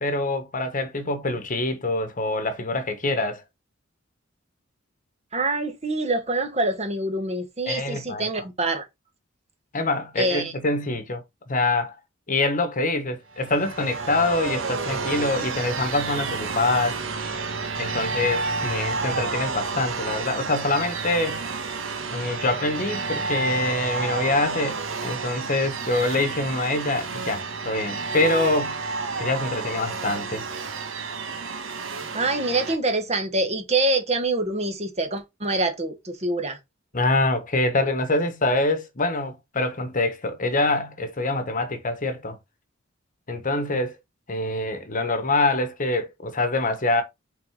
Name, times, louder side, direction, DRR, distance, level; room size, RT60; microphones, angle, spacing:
voice 1, 0.0-3.4 7.7-8.3 9.7-12.0 12.3-17.0 17.8-21.4 22.1-28.8 29.2-30.4 36.9-42.4 43.3-43.9 44.3-47.0, left 2 dB, 40° left, 1.3 m, -25 dB
voice 2, 5.3-8.9 10.2-10.5 32.1-36.6, right 2 dB, 35° right, 1.3 m, -25 dB
sound 1, 13.3-32.8, right 4 dB, 75° right, 1.3 m, -30 dB
5.7 x 4.2 x 4.8 m
head